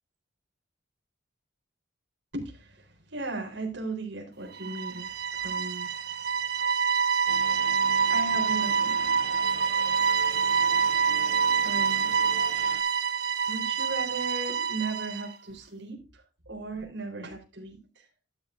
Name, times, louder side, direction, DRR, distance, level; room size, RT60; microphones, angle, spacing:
voice 1, 2.3-6.1 8.1-9.1 11.6-12.1 13.5-18.1, right 3 dB, 70° right, 4.1 m, -37 dB
sound 1, 4.5-15.3, right 6 dB, 55° right, 1.3 m, -26 dB
sound 2, 7.3-12.8, right 2 dB, 35° right, 2.7 m, -43 dB
12.5 x 11.5 x 2.6 m
head